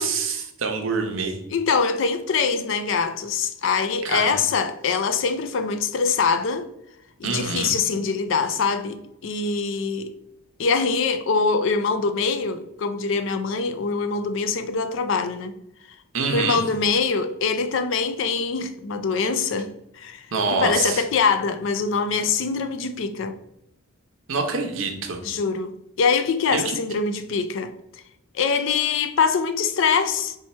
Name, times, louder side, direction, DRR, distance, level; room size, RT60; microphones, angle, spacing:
voice 1, 0.0-1.4 4.0-4.3 7.2-7.7 16.1-16.6 20.3-21.0 24.3-25.2 26.5-26.8, right 4 dB, 65° right, 0.7 m, -25 dB
voice 2, 1.5-6.7 7.2-10.1 10.6-15.6 16.3-19.7 20.0-20.3 20.5-23.3 25.2-25.7 26.0-27.7 28.3-30.4, left 5 dB, 60° left, 0.4 m, -23 dB
4.4 x 2.3 x 4.1 m
head